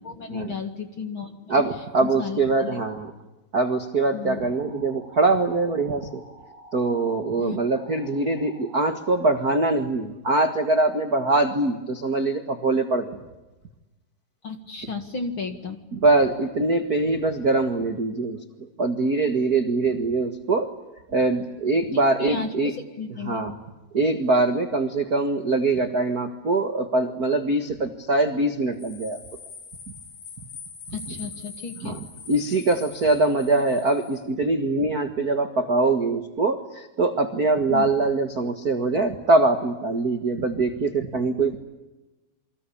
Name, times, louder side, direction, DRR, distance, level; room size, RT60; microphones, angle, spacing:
voice 1, 0.0-1.5 2.0-2.8 4.1-4.4 7.4-7.6 14.4-15.8 21.9-23.4 30.9-32.0 37.7-37.9, left 4 dB, 45° left, 6 dB, 2.0 m, -33 dB
voice 2, 1.5-3.1 3.5-6.2 6.7-13.2 15.9-18.4 18.8-20.7 21.1-22.7 23.2-23.6 23.9-29.2 31.8-41.6, right 2 dB, 55° right, 7 dB, 1.0 m, -23 dB
sound 1, 4.2-9.3, right 1 dB, 25° right, 7.9 m, -49 dB
sound 2, 28.8-34.2, left 5 dB, 75° left, 10.0 m, -43 dB
29.0 x 24.0 x 8.5 m, 1.1 s
omnidirectional pair, 4.5 m